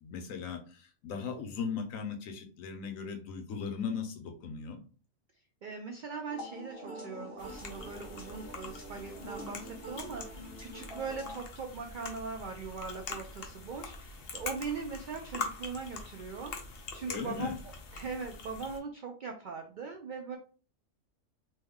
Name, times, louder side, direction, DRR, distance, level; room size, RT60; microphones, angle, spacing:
voice 1, 0.0-4.8 17.1-17.6, left 6 dB, 90° left, 5 dB, 1.1 m, -38 dB
voice 2, 5.6-17.5 17.9-20.4, right 5 dB, 75° right, 3 dB, 0.4 m, -40 dB
sound 1, 6.3-11.4, equal, 20° left, 0.8 m, -46 dB
sound 2, 7.4-18.8, left 4 dB, 55° left, 0.8 m, -44 dB
3.2 x 2.1 x 3.5 m, 0.38 s
omnidirectional pair, 1.4 m